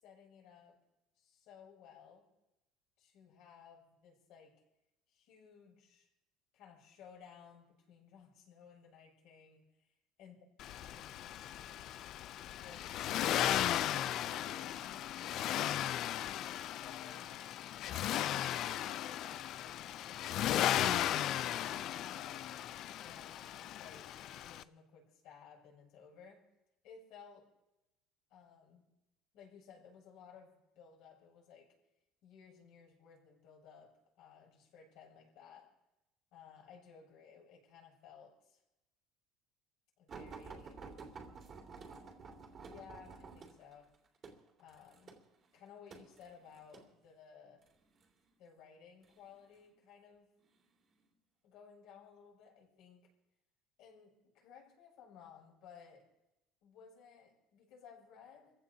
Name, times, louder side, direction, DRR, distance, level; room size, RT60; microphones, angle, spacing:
voice 1, 0.0-0.8 1.2-2.2 3.0-4.5 5.1-6.1 6.5-9.9 10.2-10.3 10.9-11.5 12.5-13.7 14.3-15.7 16.4-17.3 17.8-18.2 18.8-22.5 23.0-26.4 26.8-27.5 28.3-28.8 29.3-31.7 32.2-33.9 34.2-35.7 36.3-38.6 40.0-40.8 42.7-43.9 44.6-45.2 45.5-47.6 48.4-50.3 51.4-53.1 53.8-56.1 56.6-58.5, left 7 dB, 65° left, -2 dB, 6.9 m, -58 dB
Accelerating revving vroom, 10.6-24.6, left 12 dB, 50° left, 0.4 m, -36 dB
sound 1, 40.1-46.9 47.7-48.1 49.0-49.7 50.4-50.6 51.0-51.1, right 4 dB, 35° right, 2.4 m, -51 dB
28.5 x 15.5 x 2.8 m, 0.92 s
cardioid pair, 145°, 0 cm